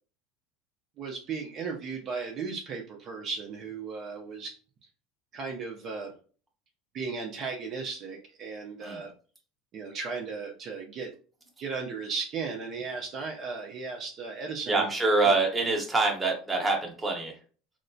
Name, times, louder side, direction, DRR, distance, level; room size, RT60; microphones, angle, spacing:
voice 1, 1.0-4.6 5.3-6.1 6.9-9.1 9.7-11.1 11.6-14.9 15.2-15.4, right 5 dB, 40° right, 0 dB, 0.6 m, -36 dB
voice 2, 14.7-17.3, right 3 dB, 10° right, 0 dB, 0.9 m, -25 dB
3.2 x 2.8 x 2.7 m, 0.40 s
supercardioid pair, 145°, 0 cm